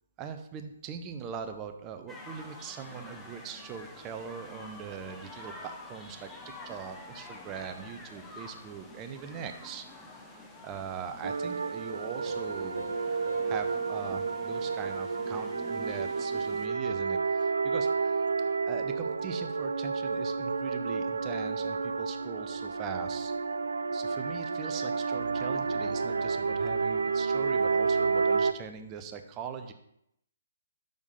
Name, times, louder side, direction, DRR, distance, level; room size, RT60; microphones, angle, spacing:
voice 1, 0.2-6.3 6.6-17.9 18.7-23.3 23.9-29.7, right 7 dB, 25° right, 7 dB, 0.7 m, -41 dB
sound 1, 2.1-16.7, left 2 dB, 10° left, 0.8 m, -48 dB
sound 2, 11.2-28.5, right 4 dB, 75° right, 0.3 m, -30 dB
Piano, 12.3-15.5, left 7 dB, 60° left, 1.6 m, -50 dB
6.5 x 3.5 x 5.5 m, 0.76 s
figure-of-eight pair, 135°, 0 cm